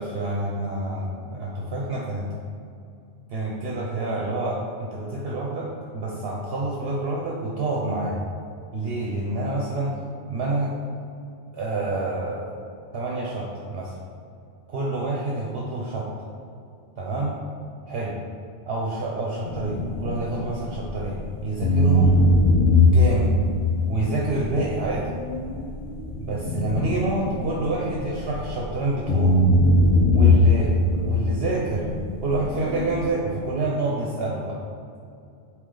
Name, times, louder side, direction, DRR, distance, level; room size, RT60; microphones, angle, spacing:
voice 1, 0.0-2.3 3.3-5.7 5.9-8.2 8.7-10.0 10.3-10.7 11.5-12.6 12.9-13.9 14.7-16.1 17.0-17.3 17.9-18.1 18.7-22.2 22.6-23.3 23.9-25.1 26.2-29.4 30.1-30.7 31.0-31.9 32.2-34.6, right 2 dB, 65° right, -3 dB, 0.9 m, -27 dB
sound 1, 19.5-21.2 21.6-28.7 29.1-33.1, left 1 dB, 75° left, 1.0 m, -21 dB
8.2 x 3.1 x 3.8 m, 2.5 s
omnidirectional pair, 1.1 m